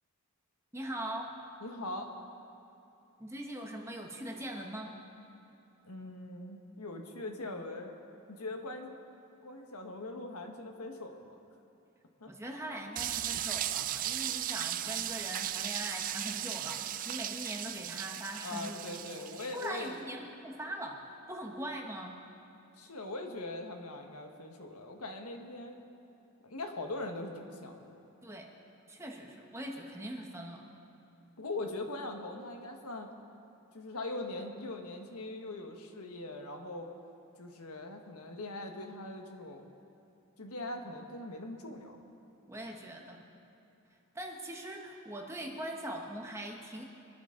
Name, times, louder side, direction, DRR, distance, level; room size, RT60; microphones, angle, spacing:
voice 1, 0.7-1.3 3.2-5.0 12.3-19.2 19.5-22.2 28.2-28.5 28.9-30.7 42.5-43.2 44.1-46.8, right 1 dB, 10° right, 1 dB, 1.2 m, -41 dB
voice 2, 1.6-2.1 5.8-7.9 8.3-9.0 9.4-11.3 12.2-12.3 18.4-20.0 22.8-25.8 26.4-28.0 31.4-33.1 33.7-36.9 37.4-39.7 40.4-42.0, left 2 dB, 85° left, 3 dB, 1.5 m, -41 dB
sound 1, 12.9-19.8, right 12 dB, 35° right, 0.3 m, -36 dB
24.0 x 13.0 x 3.9 m, 2.9 s
head